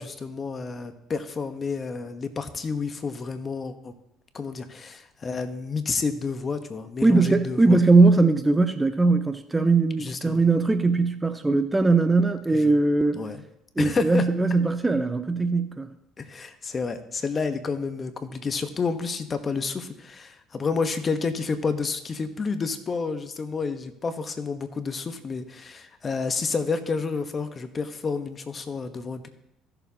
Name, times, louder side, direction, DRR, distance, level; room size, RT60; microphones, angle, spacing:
voice 1, 0.0-3.9 4.3-7.8 10.0-10.4 12.5-12.7 13.1-13.4 13.8-14.2 16.2-29.3, left 4 dB, 35° left, 9 dB, 1.0 m, -30 dB
voice 2, 7.0-13.2 13.8-15.9, right 3 dB, 15° right, 10 dB, 0.6 m, -20 dB
15.5 x 6.9 x 2.8 m, 0.83 s
supercardioid pair, 80°, 0 cm